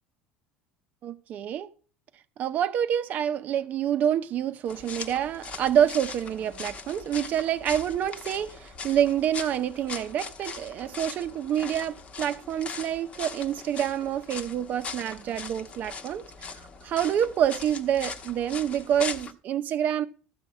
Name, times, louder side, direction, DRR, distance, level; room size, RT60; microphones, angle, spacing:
voice 1, 1.0-1.7 2.4-16.5 16.8-20.0, right 10 dB, 45° right, 0.7 m, -27 dB
sound 1, 4.7-19.3, left 5 dB, 35° left, 1.1 m, -40 dB
13.0 x 4.8 x 8.3 m
supercardioid pair, 125°, 4 cm